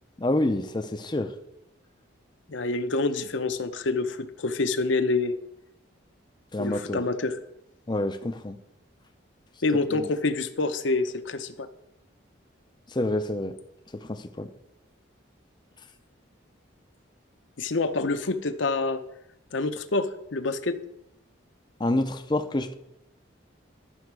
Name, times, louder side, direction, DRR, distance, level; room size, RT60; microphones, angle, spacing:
voice 1, 0.2-1.3 6.5-7.0 7.9-8.6 9.9-10.1 12.9-13.6 13.9-14.5 21.8-22.7, left 1 dB, 20° left, 7 dB, 0.5 m, -28 dB
voice 2, 2.5-5.4 6.6-7.4 9.6-11.7 17.6-19.0 19.5-20.8, left 3 dB, 70° left, 9 dB, 0.7 m, -27 dB
11.5 x 7.0 x 4.7 m, 0.85 s
head